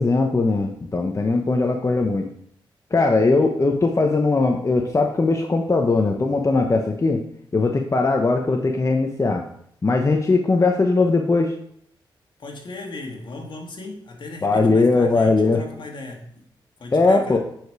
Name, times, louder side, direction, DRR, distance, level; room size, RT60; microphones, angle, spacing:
voice 1, 0.0-2.3 2.9-7.2 7.5-9.4 9.8-11.5 14.4-15.6 16.9-17.4, left 3 dB, 35° left, 3 dB, 0.9 m, -19 dB
voice 2, 12.4-16.5 16.8-17.4, left 2 dB, 65° left, 2 dB, 1.7 m, -37 dB
9.2 x 5.1 x 4.7 m, 0.67 s
cardioid pair, 65°, 9 cm